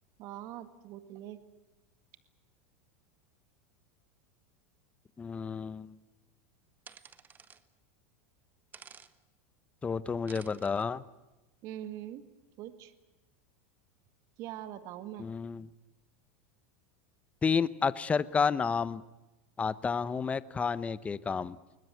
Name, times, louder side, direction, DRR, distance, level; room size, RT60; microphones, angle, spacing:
voice 1, 0.2-1.4 11.6-12.2 12.6-12.9 14.4-15.3, right 12 dB, 50° right, 10 dB, 1.9 m, -42 dB
voice 2, 5.2-6.0 9.8-11.0 15.2-15.7 17.4-19.0 19.6-21.6, left 5 dB, 20° left, 16 dB, 0.8 m, -30 dB
sound 1, 6.9-7.6 8.7-9.1 10.3-10.9, right 7 dB, 25° right, 1.2 m, -52 dB
21.5 x 20.0 x 9.4 m, 1.0 s
supercardioid pair, 115°, 7 cm